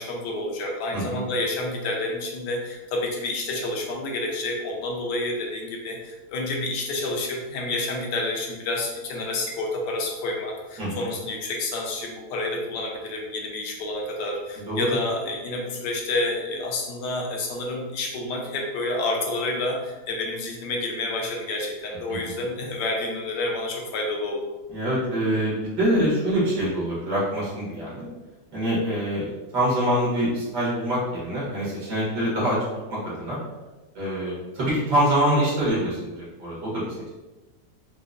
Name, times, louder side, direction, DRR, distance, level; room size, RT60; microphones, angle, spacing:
voice 1, 0.0-24.4, left 2 dB, 85° left, 0 dB, 1.3 m, -29 dB
voice 2, 0.9-1.2 10.8-11.1 14.7-14.9 22.1-22.2 24.7-28.1 28.5-32.6 32.9-33.4 34.0-37.1, equal, 80° right, -7 dB, 2.0 m, -25 dB
4.8 x 2.1 x 2.4 m, 1.1 s
omnidirectional pair, 1.8 m